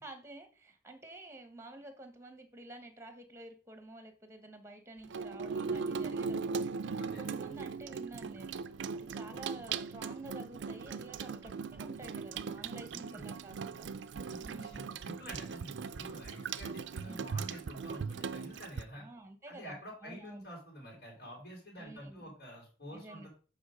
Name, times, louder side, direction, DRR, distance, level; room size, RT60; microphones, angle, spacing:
voice 1, 0.0-8.6 8.9-13.9 14.4-15.0 17.1-17.3 18.9-20.5 21.8-22.3 22.9-23.3, right 2 dB, 15° right, 7 dB, 1.1 m, -50 dB
Water tap faucet / Sink (filling or washing), 5.0-18.8, right 5 dB, 85° right, 0.4 m, -39 dB
voice 2, 6.9-7.3 12.9-13.4 14.2-19.1 19.5-23.3, equal, 60° left, -2 dB, 3.5 m, -48 dB
8.2 x 4.0 x 4.9 m, 0.38 s
head